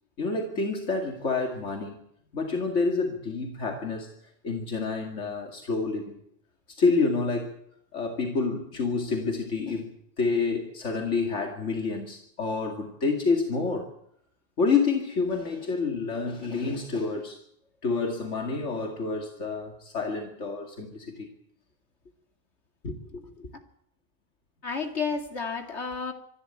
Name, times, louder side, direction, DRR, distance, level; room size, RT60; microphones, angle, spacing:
voice 1, 0.2-2.0 2.3-4.1 4.4-6.1 6.7-7.6 7.9-9.9 10.2-13.9 14.6-17.4 17.8-21.3, left 4 dB, 90° left, 2.6 m, -28 dB
voice 2, 22.8-23.5 24.6-26.1, left 5 dB, 70° left, 2.6 m, -32 dB
25.0 x 12.5 x 9.0 m
omnidirectional pair, 1.2 m